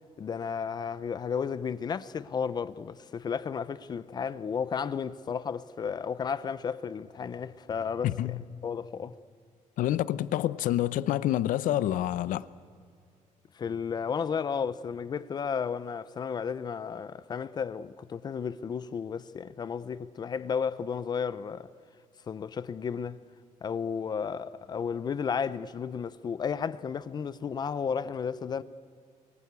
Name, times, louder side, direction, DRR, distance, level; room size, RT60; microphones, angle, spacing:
voice 1, 0.2-9.1 13.5-21.7 22.3-23.2 23.6-28.6, left 6 dB, 30° left, 0.6 m, -33 dB
voice 2, 8.0-8.4 9.8-12.5, left 13 dB, 80° left, 0.8 m, -27 dB
28.0 x 24.0 x 8.3 m
cardioid pair, 180°, 14 cm